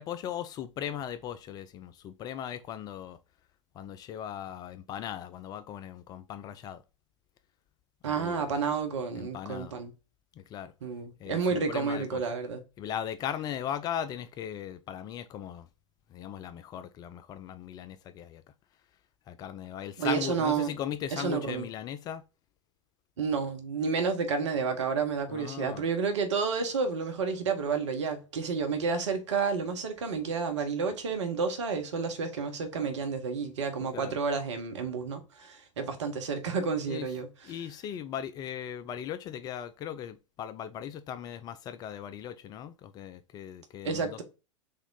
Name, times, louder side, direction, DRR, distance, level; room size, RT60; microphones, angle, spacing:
voice 1, 0.0-3.2 3.7-6.8 8.1-8.6 9.1-9.7 10.4-10.7 11.2-12.3 12.8-15.7 16.1-18.4 19.3-22.2 25.3-25.9 33.8-34.2 36.9-44.2, left 9 dB, 25° left, 0.3 m, -38 dB
voice 2, 8.0-9.9 10.8-12.6 20.0-20.7 21.1-21.7 23.2-37.3 43.8-44.2, right 5 dB, 60° right, 1.2 m, -30 dB
3.7 x 3.5 x 3.9 m
figure-of-eight pair, 95°, 17 cm